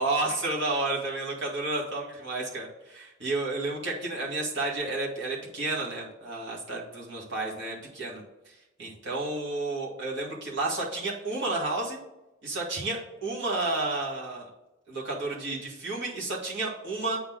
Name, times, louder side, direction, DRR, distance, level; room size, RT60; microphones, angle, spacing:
voice 1, 0.0-8.2 8.8-12.0 12.4-14.5 14.9-17.2, right 2 dB, 65° right, -4 dB, 2.2 m, -31 dB
8.4 x 4.0 x 6.2 m, 0.97 s
head